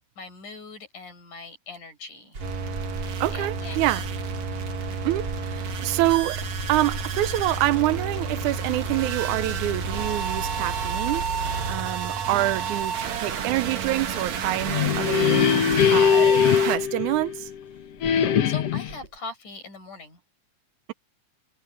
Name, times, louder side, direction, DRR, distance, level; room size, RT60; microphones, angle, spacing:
voice 1, 0.2-2.4 3.3-4.0 18.2-20.2, left 3 dB, 85° left, 7.6 m, -41 dB
sound 1, 2.3-17.4 18.0-19.2, right 2 dB, 35° right, 4.1 m, -37 dB
sound 2, 2.4-16.8, right 6 dB, 65° right, 3.0 m, -31 dB
voice 2, 3.2-4.0 5.0-6.4 6.7-11.3 11.7-15.5 15.9-17.5, right 16 dB, 80° right, 2.1 m, -26 dB
sound 3, 14.5-17.6 18.0-19.0, left 8 dB, 60° left, 2.1 m, -21 dB
omnidirectional pair, 3.5 m